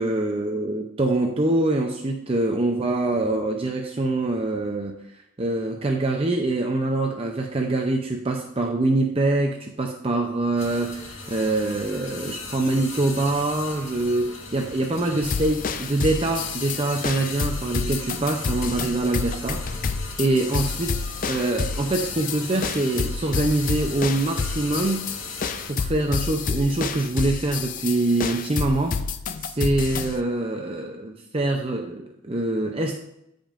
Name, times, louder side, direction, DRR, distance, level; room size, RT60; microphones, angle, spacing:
voice 1, 0.0-5.0 5.4-19.6 20.2-25.1 25.7-28.9 29.4-32.9, right 2 dB, 25° right, 2 dB, 0.5 m, -24 dB
sound 1, 10.6-25.7, left 3 dB, 70° left, 2.0 m, -38 dB
sound 2, 15.2-30.2, left 5 dB, 40° left, 0.4 m, -29 dB
14.0 x 5.2 x 2.5 m, 0.80 s
head